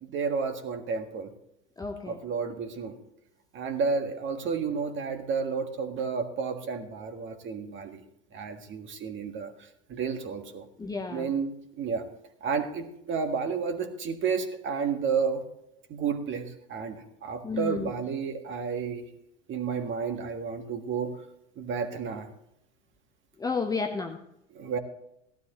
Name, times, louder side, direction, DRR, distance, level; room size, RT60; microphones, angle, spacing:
voice 1, 0.0-1.3 2.1-3.0 3.5-8.0 8.3-9.5 9.9-10.6 11.1-12.0 12.4-15.4 15.9-19.1 19.5-21.1 21.6-22.3 24.5-24.8, right 5 dB, 35° right, 7 dB, 1.6 m, -31 dB
voice 2, 1.8-2.2 10.8-11.3 17.4-17.9 23.4-24.2, left 4 dB, 10° left, 3 dB, 0.8 m, -32 dB
15.5 x 12.5 x 3.0 m, 0.80 s
hypercardioid pair, 90°, 36 cm